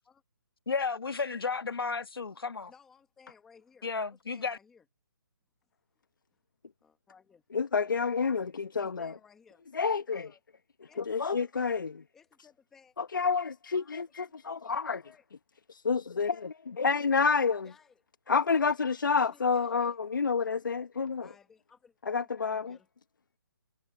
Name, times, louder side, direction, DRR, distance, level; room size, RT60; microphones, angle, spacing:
voice 1, 0.7-2.7 3.8-4.6, left 4 dB, 90° left, 1.6 m, -33 dB
voice 2, 2.7-3.9 4.3-4.8 6.8-7.4 8.8-9.6 10.1-10.4 10.9-11.8 12.1-13.4 13.7-14.0 14.5-15.2 17.6-18.0 19.1-20.0 21.2-22.9, left 6 dB, 5° left, 0.9 m, -60 dB
voice 3, 7.5-9.1 9.7-10.3 11.0-11.9 13.0-15.0 15.7-17.7 18.3-21.3 22.0-22.8, left 5 dB, 60° left, 0.9 m, -29 dB
hypercardioid pair, 180°, 12 cm